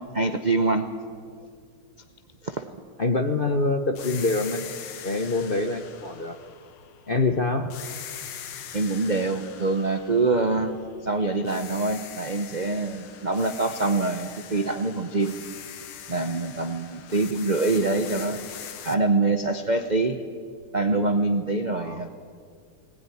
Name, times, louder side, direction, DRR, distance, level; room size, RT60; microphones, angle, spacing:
voice 1, 0.1-0.9 2.4-2.7 8.7-10.8 11.0-15.3 16.1-18.5 18.8-20.2 20.7-22.1, right 3 dB, 80° right, 7 dB, 0.4 m, -25 dB
voice 2, 3.0-4.6 5.0-6.4 7.1-7.7 21.7-22.0, left 3 dB, 50° left, 6 dB, 0.6 m, -25 dB
sound 1, 4.0-7.2 7.7-11.1 11.5-19.0, left 9 dB, 80° left, 2.0 m, -42 dB
20.5 x 19.5 x 9.9 m, 2.2 s
omnidirectional pair, 2.4 m